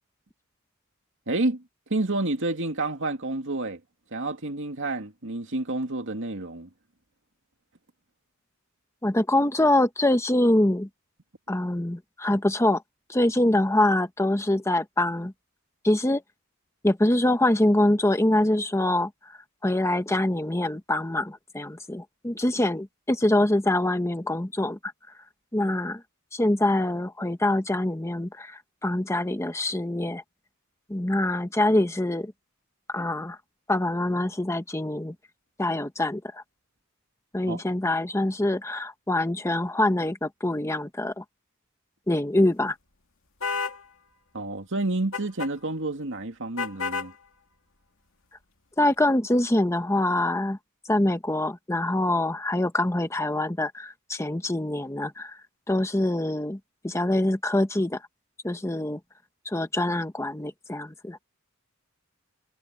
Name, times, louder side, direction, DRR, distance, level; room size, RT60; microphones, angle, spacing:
voice 1, 1.3-1.6 1.9-3.8 4.1-6.7 37.5-37.6 44.3-47.1, right 2 dB, 60° right, 2.5 m, -29 dB
voice 2, 9.0-10.9 11.5-12.8 13.1-15.3 15.8-16.2 16.8-24.9 25.5-26.0 26.3-30.2 30.9-32.3 32.9-33.4 33.7-35.1 35.6-36.4 37.3-41.2 42.1-42.8 48.8-50.6 50.8-58.1 58.4-59.0 59.4-61.2, left 1 dB, 15° left, 1.0 m, -25 dB
sound 1, 43.4-43.8 45.1-45.5 46.6-47.1, left 5 dB, 65° left, 2.7 m, -30 dB
head